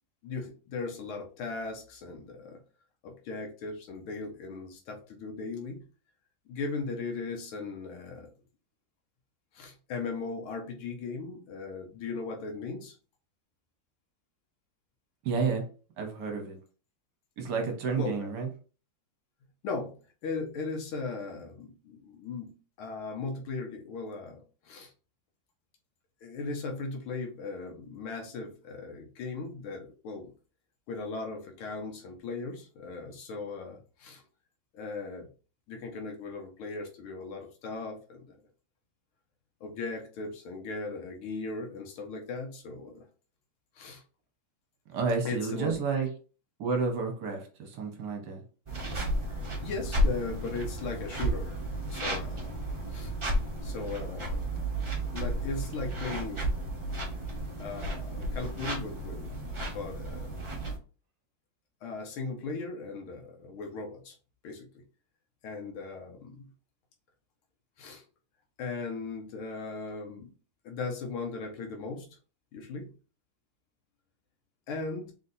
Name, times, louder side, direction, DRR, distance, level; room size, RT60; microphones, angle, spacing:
voice 1, 0.2-2.6 3.0-5.8 6.5-8.3 9.5-13.0 18.0-18.3 19.6-19.9 20.2-24.9 26.2-30.3 30.9-34.2 34.7-35.3 35.7-38.3 39.6-43.1 43.7-44.0 45.2-46.0 49.6-51.5 51.9-52.5 52.9-53.1 53.6-54.4 55.1-56.5 57.6-59.3 59.7-60.5 61.8-64.2 64.4-64.7 65.4-66.5 67.8-68.0 68.6-70.3 70.6-72.2 72.5-72.9 74.7-75.1, left 4 dB, 90° left, 2 dB, 1.8 m, -38 dB
voice 2, 15.2-15.7 16.0-16.6 17.4-18.5 44.9-46.1 46.6-48.4, right 5 dB, 60° right, 3 dB, 1.4 m, -30 dB
sound 1, 48.7-60.8, right 1 dB, 25° right, 0.6 m, -33 dB
4.0 x 4.0 x 2.7 m, 0.36 s
omnidirectional pair, 2.2 m